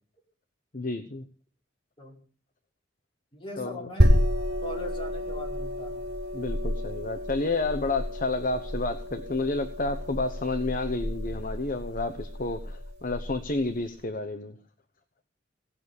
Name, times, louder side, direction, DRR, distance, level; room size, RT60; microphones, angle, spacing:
voice 1, 0.7-1.2 3.6-3.9 6.3-14.5, left 3 dB, 45° left, 1.0 m, -30 dB
voice 2, 3.3-4.3 4.6-6.1, equal, 25° left, 5.0 m, -40 dB
sound 1, 4.0-13.3, equal, 55° right, 4.7 m, -29 dB
18.0 x 7.0 x 9.8 m
head